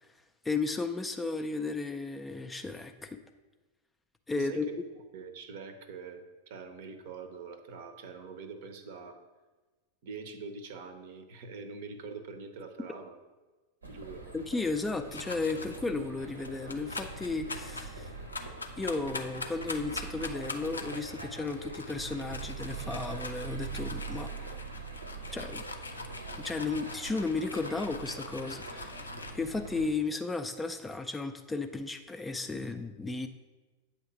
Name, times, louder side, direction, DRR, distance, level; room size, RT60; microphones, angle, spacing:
voice 1, 0.4-3.2 4.3-4.7 14.3-18.1 18.8-24.3 25.3-25.6 26.4-29.0 29.3-33.3, left 3 dB, 10° left, 7 dB, 0.3 m, -34 dB
voice 2, 4.3-4.8 5.1-9.2 10.0-13.2 13.9-14.3, right 4 dB, 50° right, 8 dB, 0.6 m, -44 dB
sound 1, 13.8-29.9, right 4 dB, 80° right, 0.8 m, -43 dB
sound 2, 15.1-15.8 16.4-29.3, left 3 dB, 80° left, 0.5 m, -43 dB
8.2 x 2.9 x 5.8 m, 1.3 s
figure-of-eight pair, 90°, 0 cm